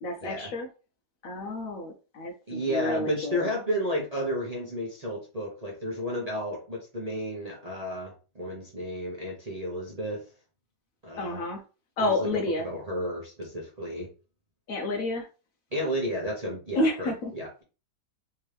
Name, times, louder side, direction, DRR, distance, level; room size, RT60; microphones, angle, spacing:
voice 1, 0.0-0.7 1.2-3.5 11.2-11.6 12.0-12.7 14.7-15.3 16.8-17.3, left 2 dB, 65° left, 3 dB, 0.9 m, -30 dB
voice 2, 2.5-10.2 11.0-11.4 12.0-12.3 12.6-14.1 15.7-17.6, equal, 30° right, -3 dB, 0.7 m, -32 dB
3.5 x 2.9 x 3.2 m, 0.34 s
omnidirectional pair, 1.8 m